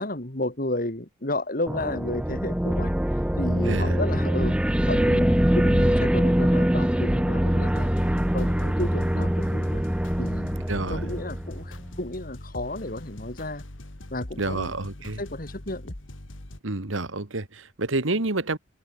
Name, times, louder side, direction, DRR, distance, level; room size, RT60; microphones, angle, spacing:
voice 1, 0.0-9.8 10.2-13.6 14.1-14.7 15.2-15.9, left 1 dB, 45° left, 2.7 m, -33 dB
sound 1, 1.7-11.9, equal, 5° right, 0.5 m, -23 dB
voice 2, 3.6-4.0 10.7-11.1 14.4-15.2 16.6-18.6, right 2 dB, 80° right, 1.8 m, -28 dB
sound 2, 7.7-16.6, left 1 dB, 75° left, 2.5 m, -42 dB
head